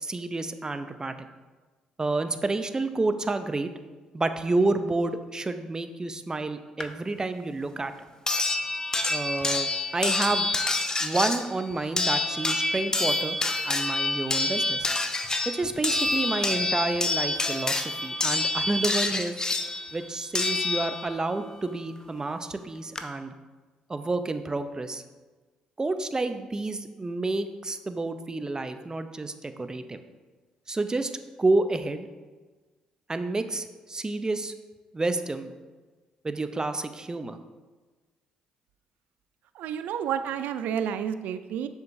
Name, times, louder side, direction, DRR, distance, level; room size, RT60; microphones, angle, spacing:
voice 1, 0.0-1.1 2.0-3.7 4.1-7.9 9.1-10.5 11.0-13.4 13.6-14.9 15.4-19.4 19.9-23.3 23.9-25.0 25.8-30.0 30.7-32.1 33.1-34.5 34.9-35.5 36.2-37.4, right 2 dB, 25° right, 9 dB, 0.6 m, -29 dB
sound 1, 6.8-6.9 8.3-21.3 22.5-22.6 22.9-23.0, left 2 dB, 25° left, 0.6 m, -27 dB
voice 2, 39.6-41.7, right 8 dB, 75° right, 11 dB, 0.3 m, -30 dB
7.1 x 6.5 x 2.7 m, 1.3 s
supercardioid pair, 55°, 3 cm